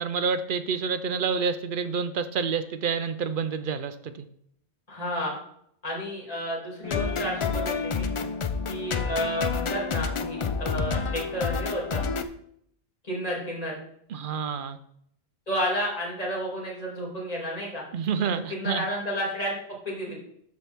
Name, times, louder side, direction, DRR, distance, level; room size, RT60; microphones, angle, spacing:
voice 1, 0.0-4.3 14.1-14.8 17.9-18.9, right 6 dB, 55° right, 11 dB, 0.7 m, -28 dB
voice 2, 4.9-5.4 5.8-8.1 8.7-12.0 13.0-13.8 15.5-17.8 18.5-19.5 19.8-20.1, equal, 35° left, -3 dB, 2.6 m, -31 dB
sound 1, 6.8-12.2, left 5 dB, 55° left, 0.3 m, -29 dB
13.0 x 4.3 x 3.4 m, 0.69 s
omnidirectional pair, 1.1 m